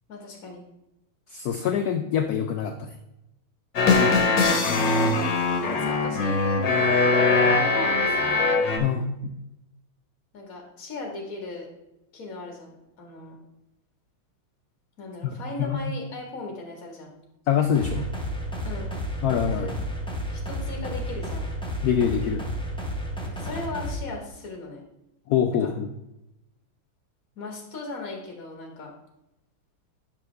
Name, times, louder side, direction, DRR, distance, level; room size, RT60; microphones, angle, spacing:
voice 1, 0.1-0.6 4.4-5.1 5.6-6.7 7.2-8.5 10.3-11.7 12.1-13.4 15.0-17.1 18.6-18.9 19.6-19.7 20.3-21.5 23.3-24.8 25.6-25.7 27.4-28.9, left 3 dB, 45° left, 0 dB, 2.2 m, -37 dB
voice 2, 1.3-2.9 8.8-9.3 15.2-15.8 17.5-18.1 19.2-19.7 21.8-22.5 25.3-25.9, left 8 dB, 90° left, 6 dB, 0.8 m, -25 dB
sound 1, 3.8-8.8, left 3 dB, 60° left, 1.9 m, -21 dB
sound 2, 17.7-23.9, equal, 5° left, 1.0 m, -31 dB
10.0 x 6.2 x 3.4 m, 0.89 s
omnidirectional pair, 2.3 m